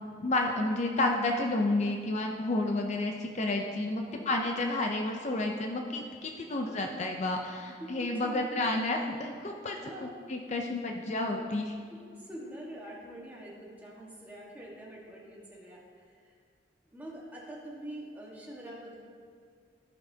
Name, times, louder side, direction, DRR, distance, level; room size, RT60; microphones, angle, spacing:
voice 1, 0.2-9.8 10.0-11.8, left 2 dB, 40° left, 2 dB, 0.5 m, -31 dB
voice 2, 6.4-6.7 7.8-8.6 9.8-10.8 11.3-11.5 11.9-16.3 16.8-19.0, right 1 dB, 10° right, -4 dB, 1.5 m, -45 dB
14.5 x 5.8 x 2.8 m, 2.2 s
head